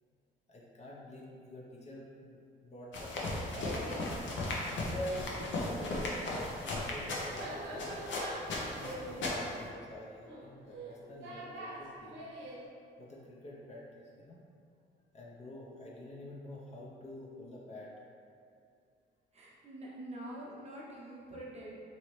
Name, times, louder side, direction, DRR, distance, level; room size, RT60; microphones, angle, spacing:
voice 1, 0.5-3.2 4.8-5.3 5.6-8.1 8.6-12.3 13.0-13.8 14.2-14.4 15.1-17.9, left 1 dB, 35° left, -4 dB, 0.6 m, -47 dB
sound 1, 2.9-9.7, left 2 dB, 70° left, 0.7 m, -36 dB
Laughter, 3.0-4.1 5.3-12.6, right 1 dB, 70° right, 0.7 m, -45 dB
voice 2, 19.3-21.7, right 1 dB, 35° right, -5 dB, 0.7 m, -45 dB
2.9 x 2.7 x 3.0 m, 2.4 s
cardioid pair, 90°, 20 cm